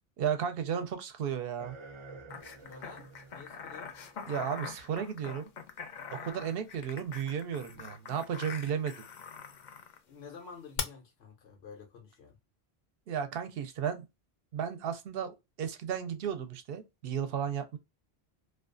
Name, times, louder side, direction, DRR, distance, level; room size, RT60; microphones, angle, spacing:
voice 1, 0.2-1.8 4.3-5.5 6.1-8.9 13.1-14.0 14.5-17.8, right 8 dB, 65° right, 0.7 m, -34 dB
sound 1, 1.6-5.7 6.8-6.9 7.7-7.8, right 3 dB, 50° right, 0.3 m, -52 dB
sound 2, 2.3-10.0 10.8-10.9, left 7 dB, 55° left, 0.6 m, -43 dB
voice 2, 2.6-3.1 3.3-4.0 10.1-12.4, left 5 dB, 90° left, 1.0 m, -50 dB
2.3 x 2.3 x 2.4 m
omnidirectional pair, 1.1 m